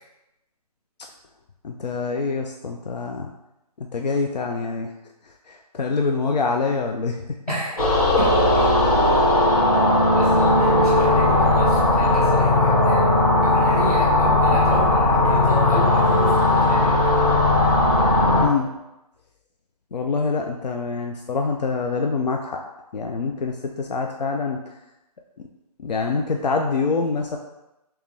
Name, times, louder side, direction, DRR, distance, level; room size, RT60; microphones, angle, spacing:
voice 1, 1.6-3.3 3.8-4.9 5.5-7.2 18.4-18.7 19.9-22.6 22.9-24.6 25.8-27.4, left 4 dB, 90° left, 2 dB, 0.4 m, -25 dB
voice 2, 7.5-7.8 8.2-8.3 10.1-13.1 13.4-17.0, right 1 dB, 10° left, -11 dB, 0.4 m, -30 dB
sound 1, 7.8-18.5, left 1 dB, 60° left, 1.3 m, -17 dB
3.3 x 3.0 x 3.3 m, 0.94 s
figure-of-eight pair, 155°, 21 cm